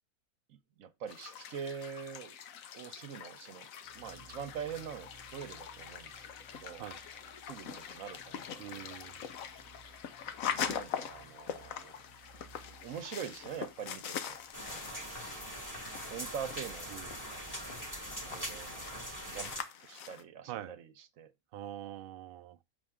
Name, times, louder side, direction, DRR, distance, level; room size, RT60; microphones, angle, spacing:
voice 1, 0.5-2.4 2.8-3.7 3.9-6.3 6.5-6.8 7.5-9.0 10.6-12.0 12.7-14.4 14.7-15.0 16.1-17.4 18.2-19.5 19.8-21.3, right 7 dB, 65° right, 1.1 m, -44 dB
sound 1, 1.1-20.2, left 8 dB, 70° left, 1.1 m, -43 dB
sound 2, 3.8-19.2, right 3 dB, 20° right, 1.1 m, -60 dB
voice 2, 8.6-9.2 16.9-17.1 20.5-20.8 21.5-22.6, right 12 dB, 85° right, 0.5 m, -44 dB
sound 3, 14.5-19.6, equal, 10° left, 1.9 m, -42 dB
7.0 x 4.4 x 3.6 m
omnidirectional pair, 1.5 m